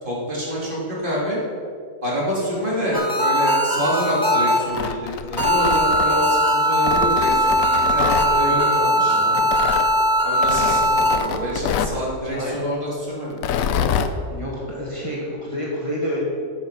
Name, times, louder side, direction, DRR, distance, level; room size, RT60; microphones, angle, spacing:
voice 1, 0.0-1.4 2.0-9.2 10.2-13.4, equal, 35° right, -6 dB, 2.6 m, -26 dB
sound 1, 2.9-4.9 5.4-11.2, equal, 15° right, 1.1 m, -19 dB
Tearing, 4.6-6.3 6.8-8.3 9.4-9.9 10.4-12.0 13.3-14.1, left 7 dB, 70° left, 1.0 m, -26 dB
voice 2, 8.4-9.5 12.3-12.6 14.3-16.2, equal, 20° left, -5 dB, 1.7 m, -29 dB
8.7 x 8.1 x 5.8 m, 2.3 s
omnidirectional pair, 1.6 m